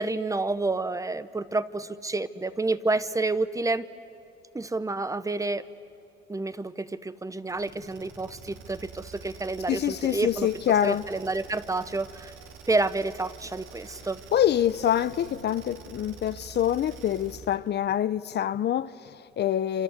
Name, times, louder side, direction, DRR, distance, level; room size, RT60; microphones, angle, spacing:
voice 1, 0.0-3.9 4.5-5.6 6.3-10.5 10.8-12.3 12.7-14.2, right 3 dB, 15° right, 0.9 m, -29 dB
sound 1, 7.5-17.7, right 6 dB, 85° right, 2.4 m, -47 dB
voice 2, 9.7-11.0 14.3-19.8, left 10 dB, 60° left, 0.6 m, -26 dB
27.5 x 26.5 x 8.1 m
cardioid pair, 90°, 20 cm